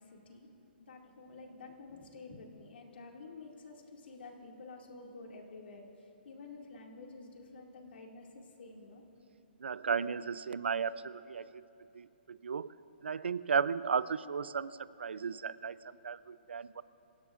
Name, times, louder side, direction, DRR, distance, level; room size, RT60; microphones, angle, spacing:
voice 1, 0.0-9.0, left 3 dB, 70° left, 1 dB, 2.4 m, -50 dB
voice 2, 9.6-11.6 11.9-12.7 13.0-16.8, right 6 dB, 85° right, 17 dB, 0.5 m, -35 dB
26.5 x 17.0 x 2.5 m, 2.9 s
hypercardioid pair, 145°, 6 cm